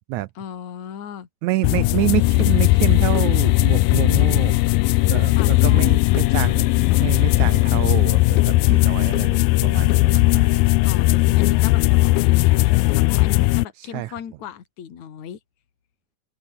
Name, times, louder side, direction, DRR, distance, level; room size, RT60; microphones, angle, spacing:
voice 1, 0.4-1.3 5.4-6.0 10.8-15.4, left 8 dB, 55° left, 3.7 m, -36 dB
voice 2, 1.4-4.6 5.0-6.7 7.0-10.6 13.8-14.1, right 17 dB, 90° right, 1.6 m, -27 dB
sound 1, 1.6-13.7, left 20 dB, 85° left, 2.5 m, -17 dB
open air
omnidirectional pair, 4.1 m